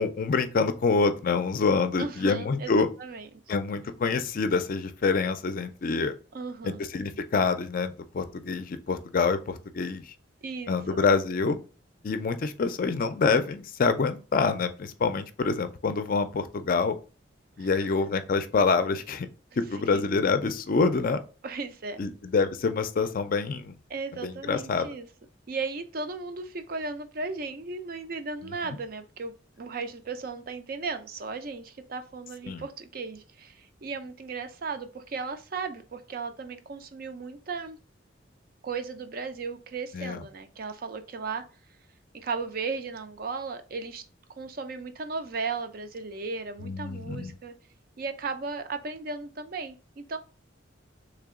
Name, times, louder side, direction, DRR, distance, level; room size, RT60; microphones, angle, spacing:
voice 1, 0.0-2.9 3.5-6.1 6.6-10.1 10.7-11.6 12.0-17.0 17.6-19.3 19.6-21.2 22.0-23.8 24.2-24.9 28.4-28.5 32.5-32.6 39.9-40.2 46.6-47.3, left 4 dB, 45° left, 10 dB, 0.4 m, -26 dB
voice 2, 2.0-2.7 3.0-3.3 6.3-6.9 10.4-11.0 17.6-17.9 19.5-19.6 19.9-20.0 21.4-22.0 23.9-25.1 25.5-37.8 38.6-41.4 42.1-44.0 44.4-47.5 48.0-50.2, right 4 dB, 50° right, 8 dB, 0.5 m, -36 dB
3.3 x 2.9 x 3.6 m, 0.35 s
head